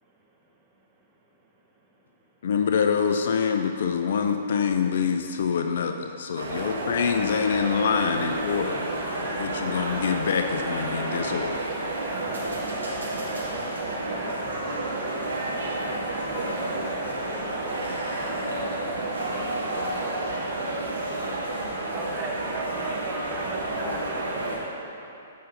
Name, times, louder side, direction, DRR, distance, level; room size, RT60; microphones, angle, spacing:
voice 1, 2.4-8.8 9.2-11.6, left 6 dB, 60° left, 6 dB, 0.5 m, -25 dB
sound 1, 6.4-24.6, right 2 dB, 70° right, 1.8 m, -30 dB
voice 2, 9.5-9.9 12.0-12.7 13.2-13.8 14.0-15.8 16.3-17.5 17.8-19.7 20.0-20.6, left 1 dB, 10° left, -3 dB, 1.2 m, -46 dB
voice 3, 21.9-25.2, right 3 dB, 15° right, -2 dB, 1.1 m, -38 dB
7.6 x 5.5 x 5.3 m, 2.7 s
figure-of-eight pair, 120°, 0 cm